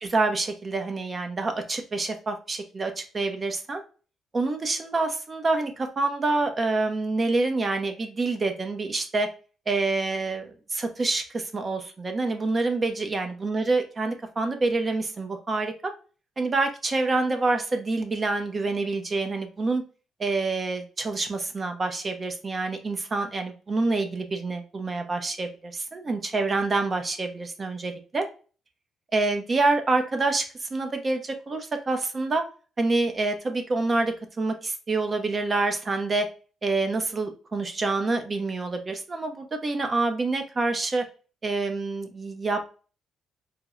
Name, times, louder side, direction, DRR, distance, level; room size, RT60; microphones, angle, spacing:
voice 1, 0.0-3.8 4.3-9.3 9.7-15.9 16.4-19.8 20.2-28.3 29.1-32.4 32.8-36.3 36.6-41.0 41.4-42.7, right 3 dB, 35° right, 6 dB, 0.6 m, -27 dB
4.1 x 2.0 x 2.4 m, 0.37 s
cardioid pair, 90°, 0 cm